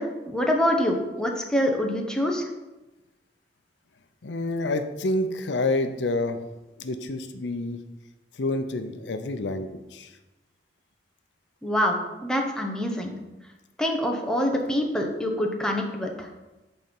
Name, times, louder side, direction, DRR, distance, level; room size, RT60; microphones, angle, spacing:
voice 1, 0.0-2.5 11.6-13.1 13.8-16.3, equal, 5° left, 1 dB, 0.9 m, -25 dB
voice 2, 4.2-6.4 6.8-7.8 8.3-10.2, left 2 dB, 80° left, 8 dB, 0.6 m, -28 dB
8.1 x 4.3 x 5.3 m, 1.0 s
head